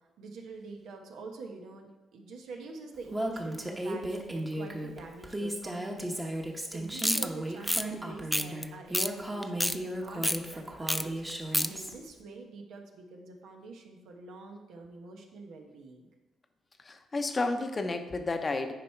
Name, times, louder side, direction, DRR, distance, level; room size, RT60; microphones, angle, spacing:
voice 1, 0.2-6.3 6.7-11.2 11.6-16.1, right 3 dB, 80° right, 2 dB, 1.2 m, -46 dB
Female speech woman speaking, 3.1-11.9, right 1 dB, 15° right, 1.1 m, -35 dB
sound 1, 7.0-7.3 7.6-7.8 8.3-8.6 8.9-9.1 9.4-9.8 10.2-10.4 10.9-11.0 11.3-11.7, left 1 dB, 5° left, 0.4 m, -27 dB
voice 2, 16.8-18.7, left 3 dB, 30° left, 6 dB, 0.8 m, -31 dB
9.1 x 4.8 x 4.5 m, 1.1 s
cardioid pair, 90°, 0 cm